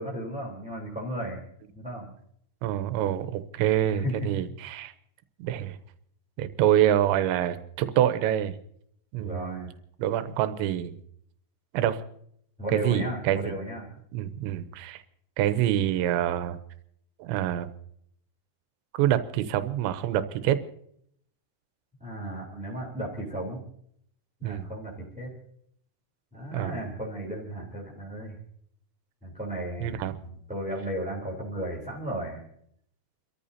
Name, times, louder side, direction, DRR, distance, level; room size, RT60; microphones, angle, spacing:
voice 1, 0.0-1.4 1.7-2.1 3.8-4.3 9.2-9.7 12.6-13.9 22.0-23.6 24.4-25.3 26.3-28.4 29.2-32.4, equal, ahead, -3 dB, 2.4 m, -35 dB
voice 2, 2.6-4.9 5.4-5.8 6.4-8.6 9.1-9.7 10.0-11.0 11.7-12.0 12.7-13.6 14.1-15.0 15.4-16.6 17.2-17.7 18.9-20.6 24.4-24.7 26.5-26.8 29.8-30.1, right 11 dB, 85° right, 10 dB, 3.0 m, -26 dB
29.5 x 14.0 x 2.8 m, 0.69 s
omnidirectional pair, 5.3 m